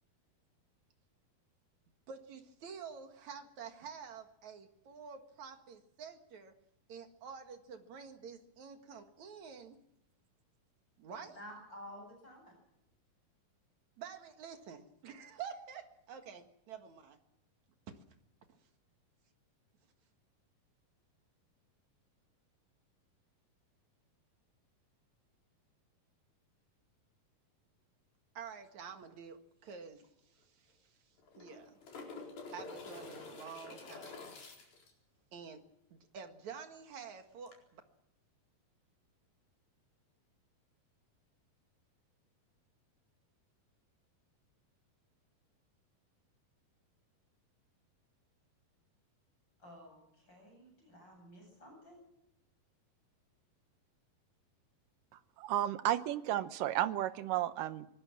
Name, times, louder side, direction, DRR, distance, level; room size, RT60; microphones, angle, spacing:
voice 1, 2.1-6.5 6.9-9.8 11.0-11.4 14.0-17.2 17.9-18.0 28.3-31.0 31.3-31.8 32.5-34.2 35.3-35.6 35.9-37.8, right 6 dB, 55° right, 6 dB, 2.8 m, -49 dB
voice 2, 11.2-12.6 49.6-52.0, equal, 30° left, 2 dB, 8.7 m, -52 dB
sound 1, 29.7-29.8 30.0-30.1 31.2-34.9 37.5-37.6, left 3 dB, 75° left, 6.2 m, -48 dB
voice 3, 55.4-57.9, right 13 dB, 75° right, 12 dB, 2.5 m, -33 dB
24.0 x 20.0 x 7.4 m, 0.79 s
omnidirectional pair, 4.2 m